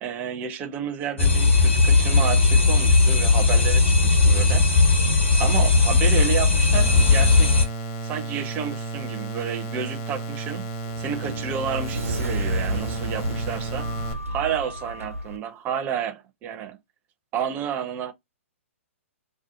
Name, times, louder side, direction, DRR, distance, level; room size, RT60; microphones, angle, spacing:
voice 1, 0.0-4.6 5.4-7.5 8.0-10.7 11.0-13.9 14.3-16.8 17.3-18.1, right 8 dB, 20° right, 0.4 m, -30 dB
sound 1, 1.2-7.6, left 3 dB, 65° left, 1.1 m, -18 dB
sound 2, 6.7-14.1, right 3 dB, 35° left, 0.7 m, -33 dB
Sliding door, 10.6-15.4, right 1 dB, 85° right, 0.6 m, -31 dB
2.6 x 2.2 x 2.3 m
figure-of-eight pair, 120°, 7 cm